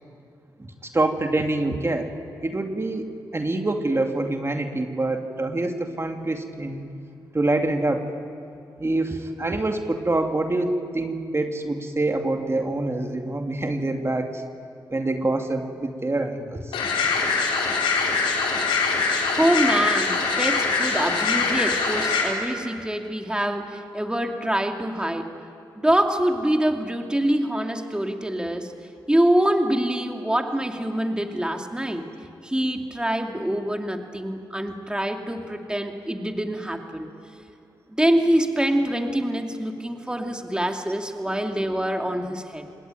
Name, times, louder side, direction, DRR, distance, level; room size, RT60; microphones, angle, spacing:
voice 1, 0.6-2.2 2.4-6.9 7.3-8.1 8.8-14.4 14.9-16.8, right 2 dB, 30° right, 4 dB, 2.6 m, -26 dB
sound 1, 16.7-22.2, left 4 dB, 85° left, 4.3 m, -23 dB
voice 2, 19.3-25.3 25.7-28.7 29.1-32.0 32.4-37.1 37.9-42.7, right 1 dB, 10° right, 3 dB, 2.6 m, -25 dB
27.0 x 21.0 x 9.2 m, 2.4 s
supercardioid pair, 40°, 9 cm